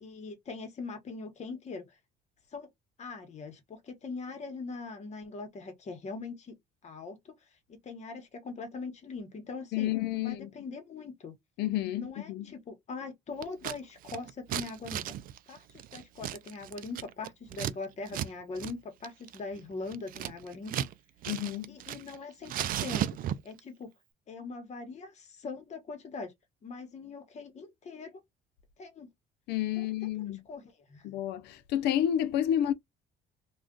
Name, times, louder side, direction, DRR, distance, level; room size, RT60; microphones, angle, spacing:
voice 1, 0.0-1.8 2.5-2.7 3.0-6.6 6.8-7.3 7.7-11.4 11.9-15.1 15.5-20.9 21.7-23.2 23.4-23.9 24.3-26.3 26.6-28.2 28.8-29.1 29.8-30.1 30.5-31.0, left 4 dB, 40° left, 1.1 m, -41 dB
voice 2, 9.7-10.5 11.6-12.5 21.3-21.8 29.5-30.4 31.0-32.7, left 11 dB, 80° left, 0.5 m, -30 dB
Scissors, 13.4-13.8 14.0-17.7 18.1-18.3 18.6-18.7 19.0-20.9 21.2-22.2 22.4-23.6, right 11 dB, 55° right, 0.4 m, -35 dB
2.4 x 2.3 x 3.7 m
cardioid pair, 110°, 17 cm